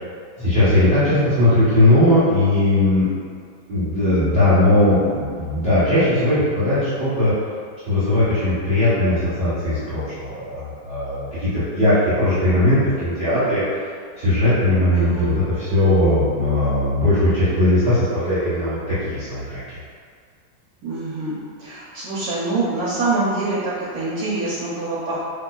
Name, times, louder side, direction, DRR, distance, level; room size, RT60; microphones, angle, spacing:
voice 1, 0.4-3.1 3.7-7.3 7.8-13.6 14.2-18.8 19.0-19.8, left 1 dB, 40° right, -14 dB, 1.1 m, -18 dB
voice 2, 4.9-5.3 14.9-15.4 20.8-25.2, right 2 dB, 65° right, -7 dB, 1.0 m, -25 dB
4.6 x 2.8 x 2.2 m, 2.1 s
omnidirectional pair, 2.0 m